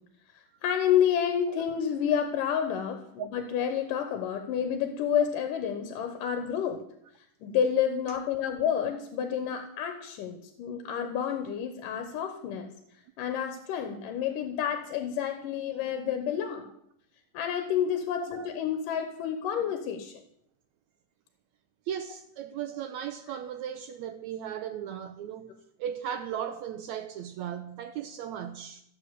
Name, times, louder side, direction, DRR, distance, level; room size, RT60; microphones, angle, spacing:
voice 1, 0.3-6.8 7.4-12.7 13.2-16.7 17.3-20.2, left 8 dB, 85° left, 2.6 m, -29 dB
voice 2, 21.9-25.5 25.8-28.8, right 9 dB, 75° right, 1.7 m, -36 dB
14.5 x 7.5 x 8.2 m
omnidirectional pair, 3.7 m